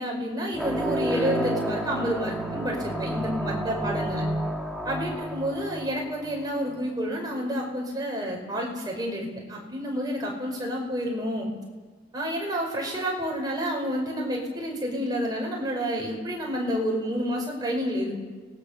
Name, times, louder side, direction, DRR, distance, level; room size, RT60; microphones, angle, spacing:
voice 1, 0.0-4.2 4.8-11.5 12.1-18.2, equal, 20° right, 0 dB, 5.4 m, -29 dB
sound 1, 0.5-6.7, right 1 dB, ahead, 2.0 m, -30 dB
29.5 x 20.0 x 6.8 m, 1.3 s
head